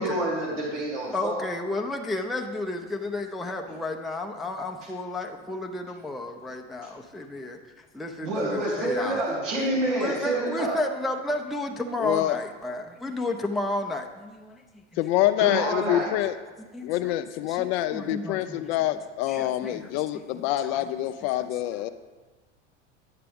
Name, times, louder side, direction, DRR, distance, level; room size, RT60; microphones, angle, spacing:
voice 1, 0.0-1.4 8.2-10.8 15.4-16.1 18.0-18.2, right 1 dB, 85° right, -3 dB, 2.1 m, -28 dB
voice 2, 1.1-7.6 7.9-9.2 9.9-14.6 16.7-17.2 17.5-17.7 17.9-18.7 19.3-19.9 20.1-20.2 20.6-20.8, left 2 dB, ahead, 1 dB, 0.5 m, -32 dB
voice 3, 12.0-12.4 15.0-16.4 16.8-21.9, left 14 dB, 65° left, 10 dB, 0.5 m, -26 dB
10.0 x 6.6 x 3.5 m, 1.3 s
hypercardioid pair, 100°, 35 cm